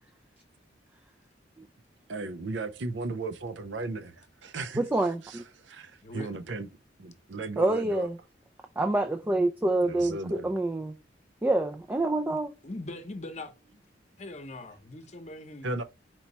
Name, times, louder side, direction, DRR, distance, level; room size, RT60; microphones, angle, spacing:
voice 1, 2.1-4.8 5.3-5.4 5.6-6.7 7.0-8.1 9.8-10.5 15.6-15.8, right 3 dB, 80° right, 0.6 m, -36 dB
voice 2, 4.8-5.4 7.6-8.2 8.8-10.9 11.4-12.5, right 2 dB, 10° right, 0.3 m, -27 dB
voice 3, 12.6-13.5 14.2-15.8, left 2 dB, 40° left, 0.8 m, -41 dB
4.5 x 2.9 x 4.1 m
head